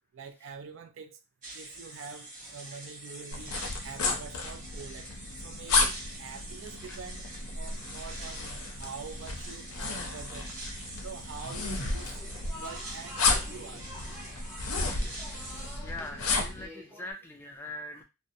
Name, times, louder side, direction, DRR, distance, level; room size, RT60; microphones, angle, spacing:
voice 1, 0.1-1.2 1.5-12.2 12.5-14.7 15.5-15.9 17.6-17.7, right 6 dB, 60° right, 0.4 m, -46 dB
sound 1, 1.4-15.8, right 2 dB, 35° right, 0.9 m, -45 dB
sound 2, 3.3-16.7, left 3 dB, 75° left, 0.6 m, -33 dB
sound 3, 12.1-17.1, left 1 dB, 5° right, 0.7 m, -47 dB
voice 2, 15.8-18.0, left 1 dB, 10° left, 0.3 m, -41 dB
2.5 x 2.0 x 2.6 m
head